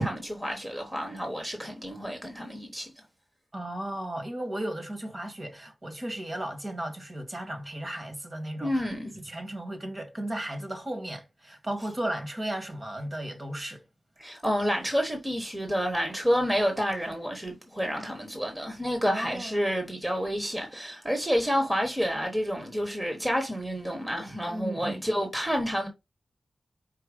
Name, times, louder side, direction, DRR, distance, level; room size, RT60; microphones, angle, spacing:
voice 1, 0.0-2.9 8.6-9.1 14.2-25.9, equal, 15° right, 1.2 m, -29 dB
voice 2, 3.5-8.8 9.2-13.8 19.1-19.6 24.5-25.0, right 1 dB, 35° right, 1.7 m, -35 dB
4.6 x 4.5 x 5.2 m
wide cardioid pair, 100°, 0 cm